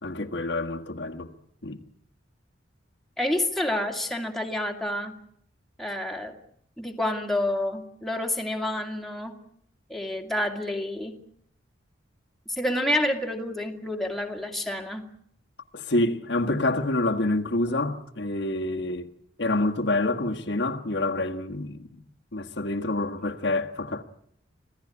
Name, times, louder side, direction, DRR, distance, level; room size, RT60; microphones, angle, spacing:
voice 1, 0.0-1.3 1.6-1.8 15.7-19.1 19.4-22.0 22.3-24.0, left 2 dB, 60° left, 1.6 m, -27 dB
voice 2, 3.2-5.1 5.8-6.3 6.8-9.3 9.9-11.2 12.5-15.1, left 1 dB, ahead, 2.3 m, -28 dB
26.5 x 16.5 x 9.8 m
head